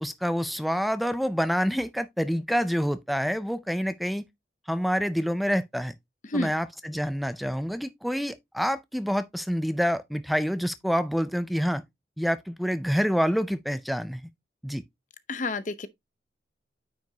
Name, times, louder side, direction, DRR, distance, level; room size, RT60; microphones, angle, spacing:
voice 1, 0.0-4.2 4.7-5.9 6.3-11.8 12.2-14.2 14.6-14.8, equal, ahead, 0.4 m, -27 dB
voice 2, 15.3-15.9, left 2 dB, 45° left, 0.7 m, -29 dB
9.2 x 5.1 x 2.8 m
head